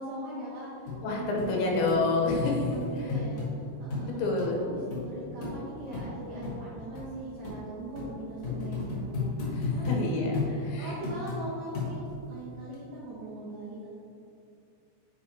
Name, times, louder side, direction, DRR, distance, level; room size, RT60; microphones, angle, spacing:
voice 1, 0.0-1.4 1.8-1.9 2.2-3.4 3.8-4.2 4.6-10.2 10.5-13.9, right 1 dB, 80° right, -8 dB, 1.8 m, -41 dB
sound 1, 0.9-1.0 1.4-1.5 1.9-2.0 2.4-3.5 3.9-4.1 4.4-4.5 4.9-5.0 5.4-5.5 5.9-6.1 6.4-6.6 6.9-7.1 7.4-7.6 8.0-8.1 8.4-10.0 10.3-10.5 11.0-11.4 11.7-12.2 12.7-12.8, left 4 dB, 60° left, 2.0 m, -32 dB
voice 2, 1.0-2.6 3.0-3.2 4.0-4.6 9.5-10.3 10.6-11.0, left 3 dB, 80° left, -1 dB, 3.3 m, -28 dB
8.7 x 5.8 x 2.9 m, 2.6 s
omnidirectional pair, 5.3 m